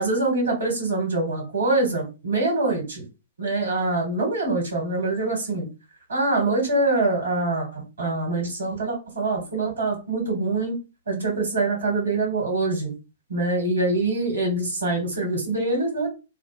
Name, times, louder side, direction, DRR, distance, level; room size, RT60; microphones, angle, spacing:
voice 1, 0.0-3.0 3.4-5.7 6.1-10.7 11.1-12.9 13.3-16.1, right 2 dB, 75° right, 1 dB, 1.7 m, -24 dB
3.2 x 2.0 x 3.3 m, 0.29 s
figure-of-eight pair, 110°, 0 cm